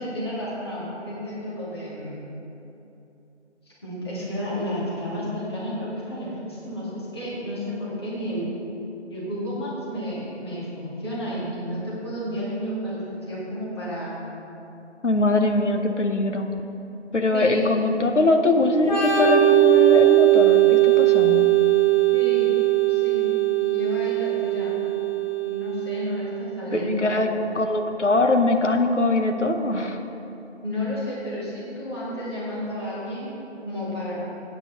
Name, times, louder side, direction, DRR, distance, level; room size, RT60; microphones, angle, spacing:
voice 1, 0.0-2.2 3.7-8.5 9.1-13.0 13.3-14.1 17.3-17.7 22.1-22.5 22.9-23.3 23.6-24.8 25.4-27.2 30.6-34.2, equal, 20° left, -8 dB, 1.8 m, -31 dB
voice 2, 15.0-16.5 17.1-21.5 26.7-27.3 27.5-30.0, left 2 dB, 80° left, 5 dB, 1.1 m, -22 dB
Organ, 18.8-26.3, right 14 dB, 40° left, 2.6 m, -19 dB
14.5 x 8.8 x 3.0 m, 2.9 s
figure-of-eight pair, 160°, 35 cm